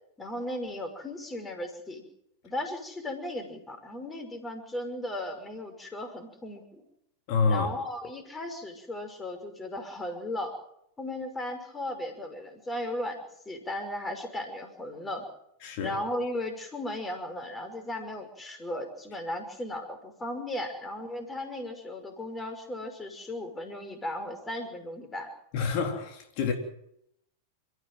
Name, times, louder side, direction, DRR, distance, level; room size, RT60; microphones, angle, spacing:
voice 1, 0.2-2.0 2.4-6.8 7.5-10.5 11.0-13.2 13.5-15.3 15.8-25.3, left 1 dB, 15° left, 5.8 m, -36 dB
voice 2, 7.3-7.7 15.6-16.0 25.5-26.5, left 5 dB, 45° left, 3.8 m, -27 dB
29.5 x 15.0 x 7.9 m
figure-of-eight pair, 90°, 0 cm